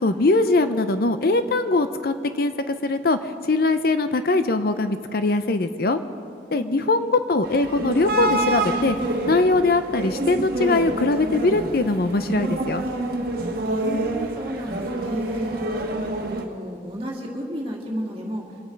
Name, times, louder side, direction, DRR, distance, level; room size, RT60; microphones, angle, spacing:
voice 1, 0.0-3.2 3.5-6.0 6.5-9.0 9.3-12.8, left 2 dB, 55° left, 10 dB, 0.6 m, -21 dB
voice 2, 6.5-6.9 13.6-15.6 16.3-18.5, equal, 30° right, -2 dB, 2.2 m, -32 dB
sound 1, 7.4-16.5, right 2 dB, 55° right, 1.3 m, -27 dB
26.0 x 8.8 x 5.2 m, 2.6 s
head